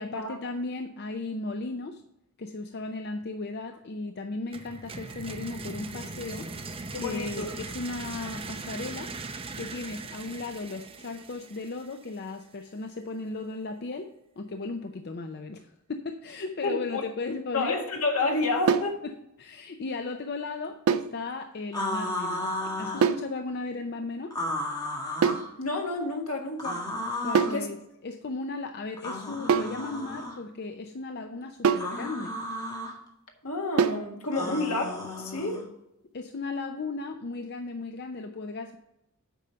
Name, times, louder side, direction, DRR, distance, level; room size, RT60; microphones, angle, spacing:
voice 1, 0.0-2.0 2.4-9.1 9.6-14.1 14.4-17.7 19.0-24.3 27.2-32.4 34.4-34.6 36.1-38.8, left 3 dB, 50° left, 6 dB, 0.5 m, -36 dB
sound 1, 4.5-12.3, right 3 dB, 25° right, 0.7 m, -40 dB
voice 2, 6.9-7.5 16.6-17.0 17.5-19.0 25.6-26.8 27.5-27.7 33.4-35.7, left 2 dB, 75° left, 2 dB, 1.7 m, -29 dB
sound 2, 18.7-19.0 20.9-21.2 23.0-23.3 25.2-25.5 27.4-27.7 29.5-29.8 31.6-32.0 33.8-34.1, right 6 dB, 80° right, 0.5 m, -24 dB
sound 3, 21.7-23.1 24.3-25.5 26.6-27.6 29.0-30.4 31.7-32.9 34.3-35.6, left 1 dB, 20° left, 1.6 m, -33 dB
8.3 x 5.4 x 5.6 m, 0.85 s
head